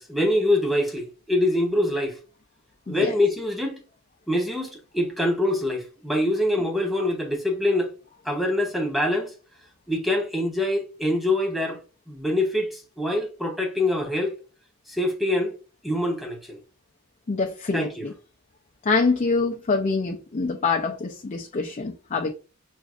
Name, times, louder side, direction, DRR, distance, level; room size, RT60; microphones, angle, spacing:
voice 1, 0.0-2.2 2.9-3.8 4.3-7.9 8.2-9.3 9.9-11.8 12.1-14.3 14.9-15.6 15.8-16.6 17.7-18.1, left 1 dB, ahead, 0.8 m, -24 dB
voice 2, 17.3-18.1 18.8-22.3, left 4 dB, 35° left, 0.4 m, -25 dB
6.0 x 2.5 x 2.4 m
head